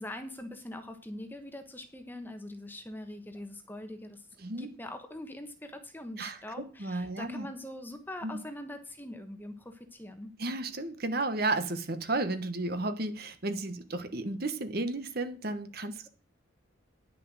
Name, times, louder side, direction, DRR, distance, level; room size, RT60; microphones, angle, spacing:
voice 1, 0.0-4.3 4.6-10.3, left 1 dB, 10° left, 7 dB, 1.2 m, -43 dB
voice 2, 4.4-4.7 6.2-6.4 6.8-7.5 8.2-8.4 10.4-16.1, right 2 dB, 50° right, 10 dB, 1.2 m, -33 dB
10.5 x 6.8 x 6.1 m, 0.37 s
head